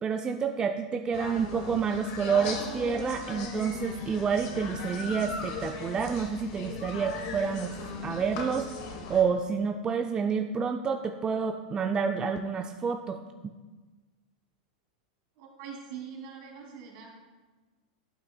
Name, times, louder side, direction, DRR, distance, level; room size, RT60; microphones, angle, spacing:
voice 1, 0.0-8.7 9.1-13.2, right 6 dB, 20° right, 5 dB, 0.3 m, -29 dB
sound 1, 1.1-9.2, left 4 dB, 55° left, 1.1 m, -38 dB
voice 2, 15.4-17.1, right 7 dB, 55° right, -1 dB, 2.3 m, -43 dB
11.5 x 5.5 x 2.2 m, 1.3 s
hypercardioid pair, 110°, 4 cm